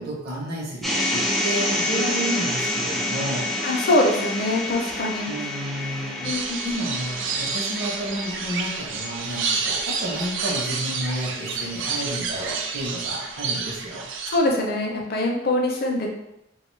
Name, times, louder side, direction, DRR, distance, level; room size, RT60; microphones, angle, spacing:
voice 1, 0.0-3.5 5.3-6.3 6.6-14.0, equal, 55° right, -3 dB, 0.7 m, -31 dB
sound 1, 0.8-13.0, left 1 dB, ahead, 0.4 m, -29 dB
voice 2, 3.6-5.3 6.2-6.6 14.3-16.1, left 2 dB, 55° left, 1 dB, 0.5 m, -23 dB
sound 2, 6.2-14.4, right 5 dB, 80° right, 0.4 m, -29 dB
2.4 x 2.3 x 3.1 m, 0.84 s
head